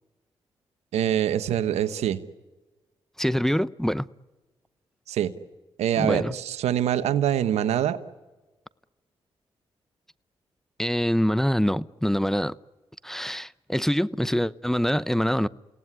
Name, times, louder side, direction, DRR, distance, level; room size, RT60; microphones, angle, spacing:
voice 1, 0.9-2.2 5.1-5.3 5.8-8.0, right 10 dB, 85° right, 1.2 m, -24 dB
voice 2, 3.2-4.1 6.0-6.3 10.8-12.6 13.0-15.5, equal, 5° left, 0.8 m, -25 dB
30.0 x 18.0 x 9.8 m
supercardioid pair, 50°, 11 cm